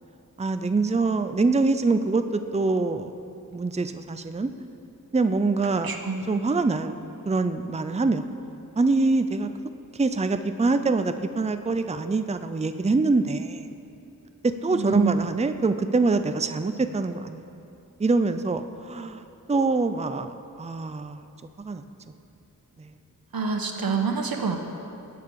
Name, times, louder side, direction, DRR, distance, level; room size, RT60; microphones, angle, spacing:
voice 1, 0.4-3.1 3.5-4.5 5.1-6.0 6.3-7.0 7.3-8.2 8.8-9.5 9.9-13.7 14.4-17.4 18.0-19.2 19.5-21.2 21.6-21.8 22.8-22.9, right 3 dB, 20° right, 9 dB, 0.5 m, -24 dB
voice 2, 5.8-6.2 14.7-15.3 23.3-24.6, right 5 dB, 90° right, 4 dB, 1.3 m, -27 dB
20.0 x 8.8 x 4.8 m, 2.8 s
wide cardioid pair, 90°, 35 cm